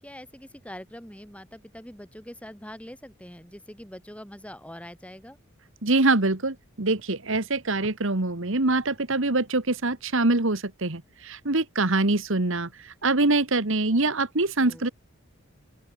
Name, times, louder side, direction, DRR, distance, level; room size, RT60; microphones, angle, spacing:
voice 1, 0.0-5.4 14.6-14.9, equal, 5° left, 7.3 m, -43 dB
voice 2, 5.8-14.9, right 2 dB, 60° right, 1.7 m, -24 dB
open air
head